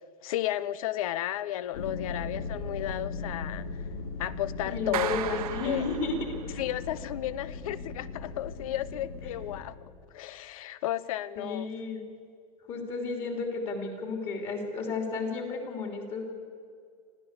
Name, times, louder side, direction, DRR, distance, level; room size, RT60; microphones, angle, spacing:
voice 1, 0.2-3.7 4.2-5.4 5.6-5.9 6.5-9.8 10.1-11.7, left 13 dB, 70° left, 18 dB, 0.9 m, -33 dB
sound 1, 1.7-9.6, left 4 dB, 85° left, 3.4 m, -38 dB
voice 2, 4.6-6.6 11.4-12.0 12.7-16.2, left 3 dB, 30° left, 3 dB, 3.3 m, -33 dB
Clapping, 4.9-6.7, right 11 dB, 85° right, 1.4 m, -35 dB
25.5 x 15.5 x 8.2 m, 2.3 s
supercardioid pair, 160°, 19 cm